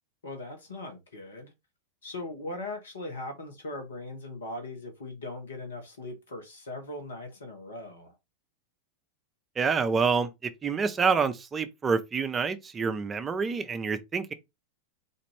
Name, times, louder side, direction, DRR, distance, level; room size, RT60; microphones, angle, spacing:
voice 1, 0.2-1.5 2.0-8.2, left 2 dB, 65° left, 1.1 m, -39 dB
voice 2, 9.6-10.3 10.6-14.3, right 5 dB, 20° right, 0.6 m, -27 dB
4.1 x 2.5 x 3.3 m
figure-of-eight pair, 90°, 0 cm